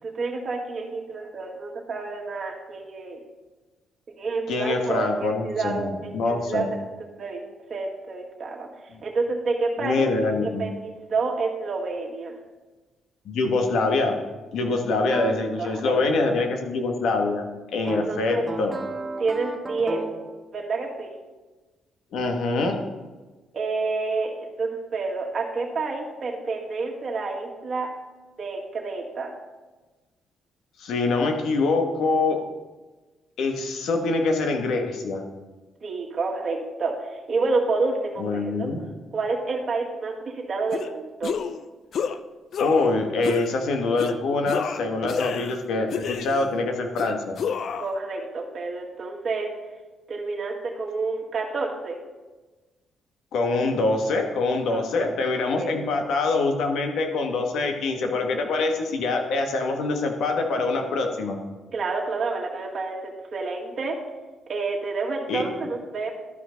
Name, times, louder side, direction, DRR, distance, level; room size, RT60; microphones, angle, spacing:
voice 1, 0.0-3.2 4.2-6.6 7.2-7.4 7.7-8.7 9.0-10.0 10.4-12.4 15.6-16.0 17.8-18.4 19.2-20.0 20.5-21.1 23.5-27.9 28.4-29.3 35.8-38.7 39.1-41.3 47.8-49.5 50.1-52.0 54.7-55.1 55.6-55.8 61.7-64.0 64.5-66.1, right 3 dB, 50° right, -1 dB, 1.8 m, -29 dB
voice 2, 4.5-6.7 8.9-9.0 9.8-10.7 13.2-14.1 14.5-17.4 17.7-18.7 22.1-22.8 30.8-32.4 33.4-35.2 38.2-38.8 42.6-47.4 53.3-61.4 65.3-65.4, left 3 dB, 75° left, 3 dB, 1.3 m, -24 dB
sound 1, 15.1-15.3 17.9-20.3, right 3 dB, 20° right, 1.1 m, -33 dB
sound 2, 40.7-40.9 41.2-41.6 41.9-42.2 42.5-42.9 43.2-43.5 44.0-44.2 44.5-45.6 45.9-46.5 47.0-47.9, left 7 dB, 60° left, 0.5 m, -30 dB
12.5 x 5.0 x 3.9 m, 1.2 s
cardioid pair, 90°, 0 cm